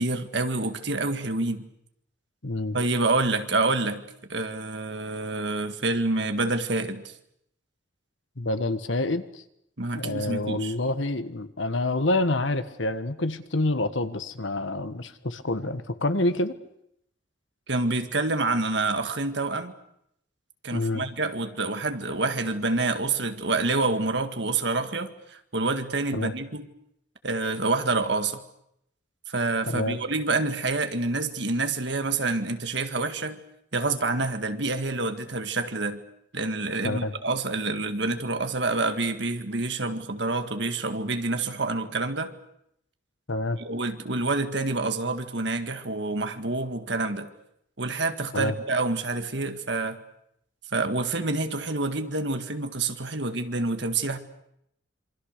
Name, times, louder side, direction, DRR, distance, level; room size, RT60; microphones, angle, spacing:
voice 1, 0.0-1.6 2.7-4.0 4.3-7.0 9.8-10.7 17.7-19.7 20.6-26.7 27.2-28.4 29.3-33.4 33.7-36.0 36.3-42.3 43.6-47.3 47.8-50.0 50.7-54.2, right 3 dB, 65° right, 8 dB, 1.9 m, -27 dB
voice 2, 2.4-2.8 8.4-9.4 9.9-16.6 20.7-21.0 26.1-26.3 29.7-30.0 36.8-37.1 43.3-43.6 48.3-48.5, left 2 dB, 75° left, 11 dB, 1.4 m, -27 dB
27.0 x 24.5 x 6.7 m, 0.76 s
head